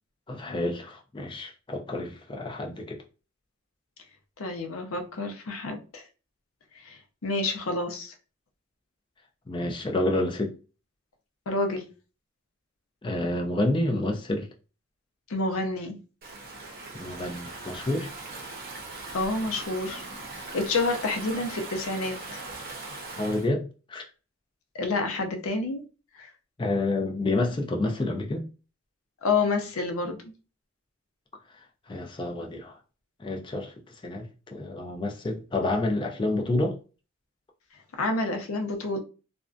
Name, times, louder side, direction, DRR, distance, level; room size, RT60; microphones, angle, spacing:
voice 1, 0.3-3.0 9.5-10.5 13.0-14.5 16.9-18.1 23.2-24.0 26.6-28.4 31.9-32.8 33.2-33.7 34.0-36.8, left 2 dB, 20° left, 0.3 m, -29 dB
voice 2, 4.4-6.0 6.9-8.1 11.5-11.9 15.3-16.0 19.1-20.0 20.5-22.2 24.7-25.8 26.2-26.3 29.2-30.3 38.0-39.0, left 3 dB, 75° left, 0.5 m, -28 dB
Stream / Ocean, 16.2-23.5, right 3 dB, 45° right, 0.6 m, -40 dB
2.5 x 2.1 x 2.4 m
head